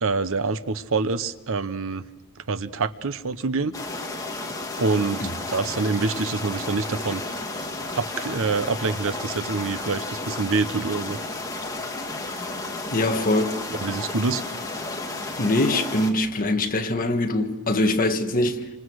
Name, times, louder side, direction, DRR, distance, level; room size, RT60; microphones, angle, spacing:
voice 1, 0.0-2.1 2.5-3.7 4.8-7.2 7.9-11.2 13.8-14.4, right 4 dB, 65° right, 0.9 m, -26 dB
sound 1, 3.7-16.1, left 2 dB, 15° left, 2.3 m, -32 dB
voice 2, 12.9-13.6 15.4-18.7, left 1 dB, 40° left, 1.6 m, -23 dB
28.5 x 26.0 x 6.4 m
head